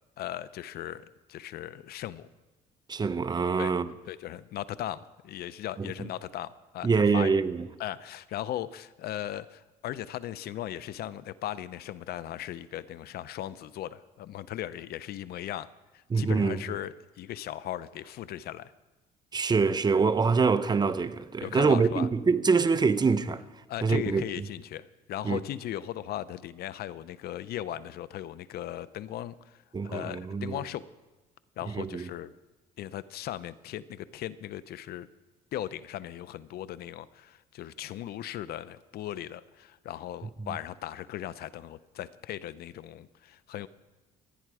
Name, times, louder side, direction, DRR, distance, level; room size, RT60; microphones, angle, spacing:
voice 1, 0.2-2.3 3.6-3.8 4.1-7.3 7.8-15.7 15.9-18.7 21.4-22.1 23.7-29.3 29.8-30.8 31.6-32.3 32.8-35.1 35.5-43.7, left 12 dB, 65° left, 0.7 m, -38 dB
voice 2, 2.9-3.9 5.8-6.1 6.8-7.7 16.1-16.6 19.3-23.4 23.8-24.2 25.2-25.4 29.7-30.6 31.7-32.1, right 4 dB, 25° right, 0.8 m, -25 dB
26.0 x 10.0 x 4.8 m
cardioid pair, 110°, 17 cm